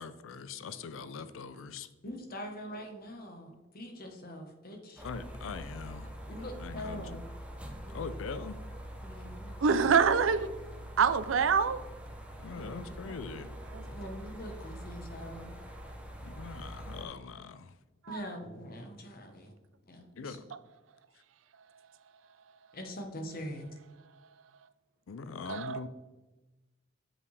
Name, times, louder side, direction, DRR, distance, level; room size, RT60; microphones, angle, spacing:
voice 1, 0.0-1.9 5.0-7.2 7.9-8.6 12.4-13.6 16.2-17.8 20.1-20.4 25.1-25.9, left 5 dB, 80° left, 13 dB, 0.4 m, -42 dB
voice 2, 2.0-5.0 6.3-7.2 7.9-8.0 9.0-9.9 12.5-12.8 13.8-15.6 18.1-19.5 19.9-20.4 22.7-23.7, equal, 50° left, 4 dB, 1.1 m, -43 dB
sound 1, 5.0-17.1, equal, 5° right, 0.8 m, -44 dB
voice 3, 9.6-10.5 11.0-11.8 13.1-13.2 13.7-13.8 18.1-18.2 25.5-25.8, right 6 dB, 75° right, 12 dB, 0.5 m, -25 dB
7.3 x 5.4 x 3.3 m, 1.1 s
head